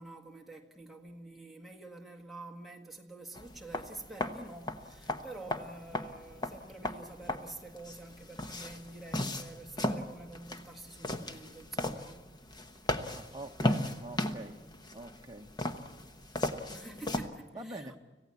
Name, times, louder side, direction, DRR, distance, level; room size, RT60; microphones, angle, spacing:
voice 1, 0.0-12.4 16.7-18.0, right 2 dB, ahead, 1.8 m, -48 dB
sound 1, 3.3-17.3, left 1 dB, 25° left, 1.1 m, -36 dB
voice 2, 13.1-14.6 14.9-15.5 17.5-17.9, right 1 dB, 20° right, 1.2 m, -45 dB
26.0 x 16.0 x 8.5 m
head